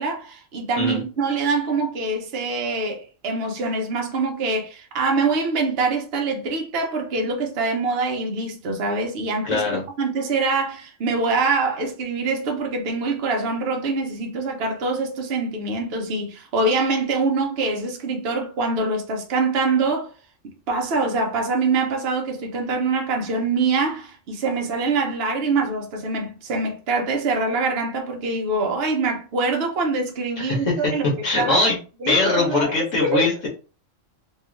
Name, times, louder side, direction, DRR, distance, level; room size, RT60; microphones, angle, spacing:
voice 1, 0.0-9.6 10.0-20.1 20.7-31.1 31.4-31.6 32.0-33.2, right 3 dB, 55° right, 0.8 m, -24 dB
voice 2, 9.4-9.8 30.4-30.9 31.2-31.8 32.1-33.5, left 3 dB, 70° left, 1.1 m, -21 dB
2.7 x 2.3 x 3.0 m
omnidirectional pair, 1.4 m